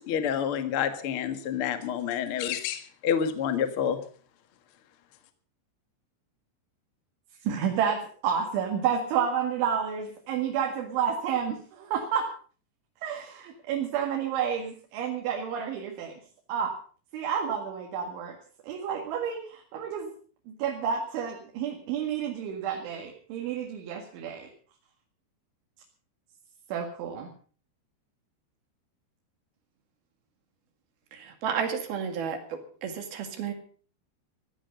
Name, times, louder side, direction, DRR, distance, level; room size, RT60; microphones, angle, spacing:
voice 1, 0.1-4.0, left 8 dB, 80° left, 9 dB, 1.2 m, -28 dB
voice 2, 7.5-12.3 13.0-16.1 16.5-16.7 17.1-18.4 18.6-20.1 20.5-24.5 26.7-27.3, right 7 dB, 90° right, 1 dB, 4.4 m, -30 dB
voice 3, 31.4-33.5, right 7 dB, 60° right, 6 dB, 3.8 m, -32 dB
16.0 x 14.5 x 5.4 m, 0.42 s
omnidirectional pair, 5.3 m